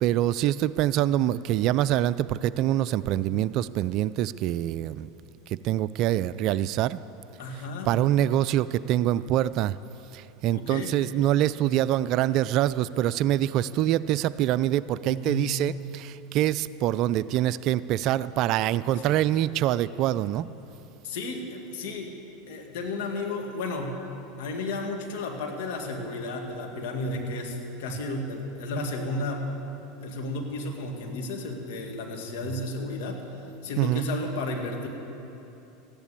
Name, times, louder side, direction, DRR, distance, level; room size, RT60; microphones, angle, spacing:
voice 1, 0.0-5.1 5.5-7.0 7.9-9.8 10.1-20.5 33.8-34.1, right 12 dB, 50° right, 16 dB, 0.4 m, -25 dB
voice 2, 7.4-7.9 10.5-10.9 15.1-15.6 19.0-19.2 21.0-22.2 22.5-23.9 24.4-29.5 30.0-33.2 33.6-34.9, left 2 dB, 70° left, 2 dB, 2.2 m, -33 dB
14.5 x 10.5 x 8.4 m, 3.0 s
hypercardioid pair, 100°, 0 cm